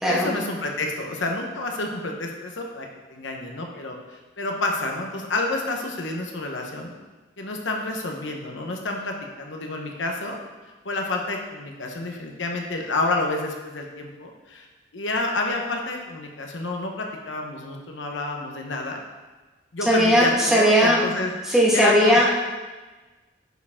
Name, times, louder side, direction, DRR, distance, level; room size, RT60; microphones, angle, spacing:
voice 1, 0.0-4.0 4.4-6.9 7.4-10.4 10.8-14.7 14.9-19.0 19.7-22.2, left 2 dB, 85° left, 2 dB, 1.0 m, -29 dB
voice 2, 19.9-21.0 21.5-22.3, equal, 5° right, -6 dB, 1.5 m, -18 dB
9.4 x 4.9 x 3.6 m, 1.2 s
head